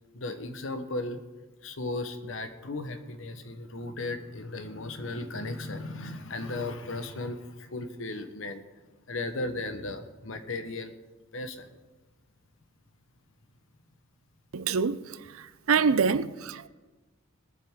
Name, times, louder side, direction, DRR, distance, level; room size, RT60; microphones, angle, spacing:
voice 1, 0.1-1.2 1.6-8.6 9.1-10.9 11.3-11.7, left 2 dB, 65° left, 1.1 m, -36 dB
voice 2, 14.5-15.2 15.7-16.7, right 5 dB, 80° right, 0.5 m, -25 dB
22.0 x 7.5 x 3.7 m
head